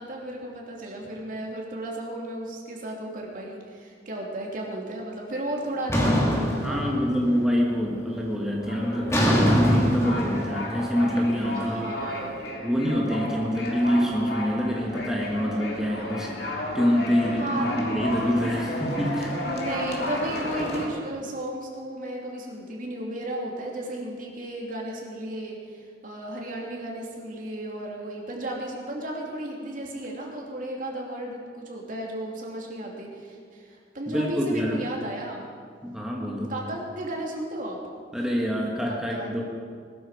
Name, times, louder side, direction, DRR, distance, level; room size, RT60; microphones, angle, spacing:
voice 1, 0.0-7.0 11.5-12.4 17.4-17.7 18.4-18.6 19.4-35.5 36.5-37.8 38.9-39.3, right 1 dB, 50° right, -2 dB, 3.0 m, -34 dB
sound 1, 5.9-7.4 7.8-8.2 9.1-12.2, equal, 15° left, 2.3 m, -24 dB
voice 2, 6.6-11.9 12.6-19.4 34.1-34.8 35.8-36.5 38.1-39.4, equal, 5° right, -3 dB, 1.5 m, -26 dB
sound 2, 8.6-20.9, left 1 dB, 60° left, 2.7 m, -33 dB
20.5 x 13.5 x 5.1 m, 2.1 s
head